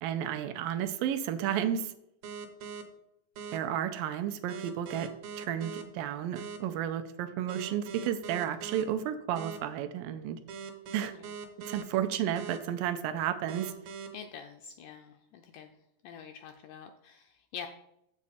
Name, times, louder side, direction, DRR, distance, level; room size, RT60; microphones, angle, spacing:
voice 1, 0.0-1.9 3.5-5.1 5.4-10.4 10.9-11.1 11.7-13.7, right 10 dB, 85° right, 9 dB, 2.3 m, -32 dB
sound 1, 2.2-2.8 3.4-3.6 4.5-5.8 6.4-6.6 7.5-8.8 9.4-9.6 10.5-11.8 12.4-12.6 13.5-14.1, right 6 dB, 65° right, 1.9 m, -41 dB
voice 2, 14.1-15.7 16.0-17.7, left 7 dB, 85° left, 5 dB, 1.8 m, -46 dB
7.4 x 7.0 x 4.2 m, 0.79 s
omnidirectional pair, 4.1 m